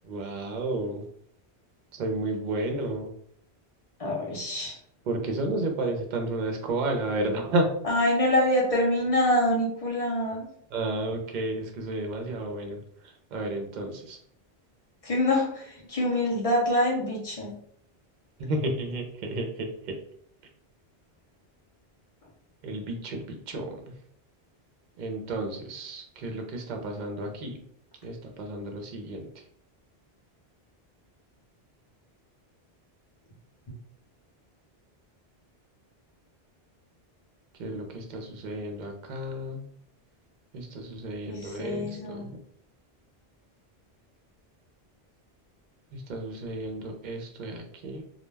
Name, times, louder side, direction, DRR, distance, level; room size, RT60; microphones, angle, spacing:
voice 1, 0.0-1.0 1.9-3.1 5.1-7.7 10.7-14.2 18.4-20.0 22.6-23.9 25.0-27.6 28.0-29.3 37.6-39.6 40.5-42.3 45.9-48.0, right 2 dB, 55° right, 3 dB, 0.6 m, -32 dB
voice 2, 4.0-4.8 7.8-10.5 15.0-17.5 41.3-42.3, left 1 dB, 40° left, -2 dB, 0.6 m, -25 dB
2.2 x 2.1 x 3.2 m, 0.65 s
omnidirectional pair, 1.1 m